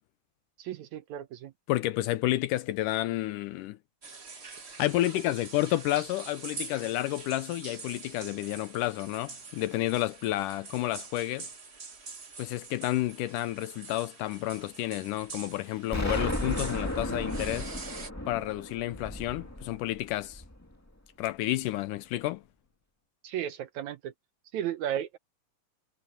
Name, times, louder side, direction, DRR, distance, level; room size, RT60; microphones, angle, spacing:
voice 1, 0.6-1.5 23.2-24.1 24.5-25.2, right 11 dB, 75° right, 1.8 m, -34 dB
voice 2, 1.7-3.8 4.8-11.5 12.4-17.7 18.3-20.4 21.2-22.4, left 16 dB, 75° left, 2.0 m, -30 dB
sound 1, 4.0-18.1, right 4 dB, 60° right, 0.6 m, -45 dB
Explosion, 15.9-20.8, left 1 dB, 10° left, 1.1 m, -34 dB
omnidirectional pair, 4.0 m